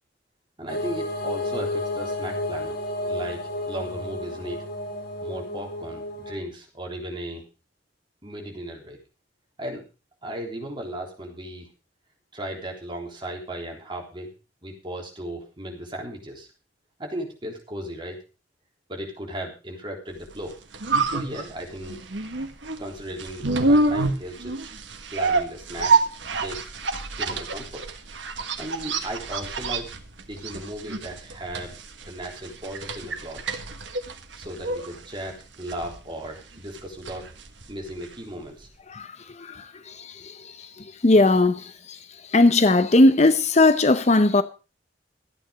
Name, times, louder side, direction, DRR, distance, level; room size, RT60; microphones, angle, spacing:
voice 1, 0.6-2.8 3.1-3.4 3.7-4.6 5.2-7.5 8.2-9.0 9.6-9.8 10.2-11.7 12.3-14.3 14.6-16.5 17.0-18.2 18.9-20.6 21.0-22.0 22.8-24.7 25.1-26.7 27.2-27.8 28.6-29.9 30.3-31.8 32.1-33.4 34.3-37.3 37.7-38.7, right 1 dB, 25° right, 3.6 m, -36 dB
sound 1, 0.7-6.3, left 1 dB, 55° left, 6.5 m, -31 dB
sound 2, 20.3-38.4 38.6-38.7, right 3 dB, 80° right, 1.6 m, -28 dB
voice 2, 39.4-40.3 41.0-42.0 42.3-44.4, left 2 dB, 40° left, 0.7 m, -18 dB
14.0 x 9.2 x 5.2 m
head